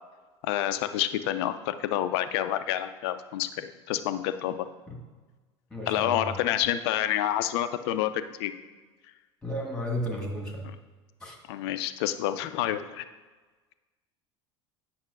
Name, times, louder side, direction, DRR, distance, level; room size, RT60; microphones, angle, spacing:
voice 1, 0.4-4.7 5.9-8.5 10.6-10.8 11.5-13.0, left 12 dB, 60° left, 11 dB, 0.4 m, -28 dB
voice 2, 5.7-6.2 9.4-10.6 11.2-11.3, equal, 5° left, 0 dB, 1.6 m, -33 dB
8.9 x 6.0 x 2.4 m, 1.3 s
figure-of-eight pair, 75°, 15 cm